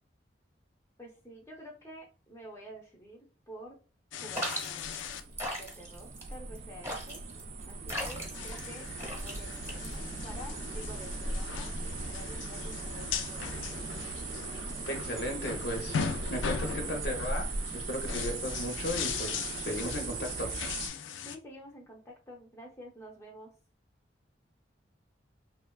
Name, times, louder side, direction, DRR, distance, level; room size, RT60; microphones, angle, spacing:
voice 1, 1.0-3.2 3.5-3.8 4.2-7.2 7.7-13.9 21.2-23.5, equal, 15° left, 0 dB, 0.5 m, -49 dB
sound 1, 4.1-5.2 5.6-5.7 8.0-21.4, left 7 dB, 85° left, 0.3 m, -39 dB
sound 2, 4.3-10.3, equal, 15° right, 0.8 m, -39 dB
sound 3, 4.8-20.9, right 3 dB, 35° right, 0.3 m, -38 dB
voice 2, 14.9-16.0 16.3-20.5, equal, 60° left, 3 dB, 0.7 m, -36 dB
3.3 x 2.1 x 2.3 m, 0.35 s
head